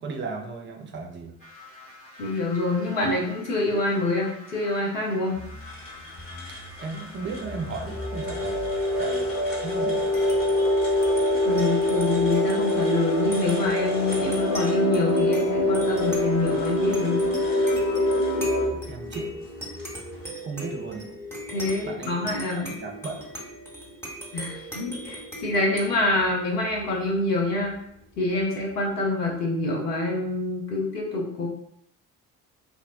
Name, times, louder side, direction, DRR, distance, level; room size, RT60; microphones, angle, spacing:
voice 1, 0.0-1.3 6.8-8.7 9.0-9.3 9.6-10.1 18.4-19.5 20.4-21.1 21.8-22.3 22.5-23.3, right 4 dB, 25° right, 3 dB, 0.5 m, -35 dB
sound 1, 1.4-18.7, left 1 dB, 65° left, 1.5 m, -25 dB
voice 2, 2.2-5.4 11.4-17.2 21.5-22.7 24.3-27.8 28.2-31.5, left 2 dB, 85° left, -2 dB, 0.7 m, -26 dB
sound 2, 5.3-20.3, left 1 dB, 45° left, 1.2 m, -42 dB
sound 3, 9.9-28.8, equal, 5° left, 0.9 m, -40 dB
2.9 x 2.0 x 2.5 m, 0.73 s
figure-of-eight pair, 50°, 46 cm